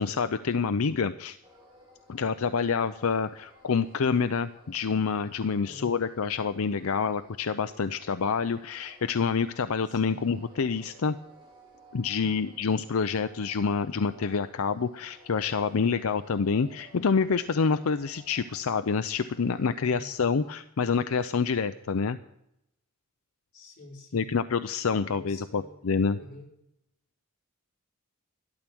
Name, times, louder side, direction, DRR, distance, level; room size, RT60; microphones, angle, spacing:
voice 1, 0.0-1.4 2.1-11.1 11.9-22.2 24.1-26.2, left 5 dB, 75° left, 11 dB, 0.5 m, -27 dB
sound 1, 1.4-20.5, right 1 dB, 25° right, 4.1 m, -57 dB
voice 2, 5.6-5.9 9.9-10.2 12.2-12.5 19.8-20.1 23.5-24.3 25.0-25.9 26.1-26.5, left 2 dB, 40° left, -2 dB, 4.5 m, -48 dB
13.0 x 12.5 x 6.1 m, 0.79 s
head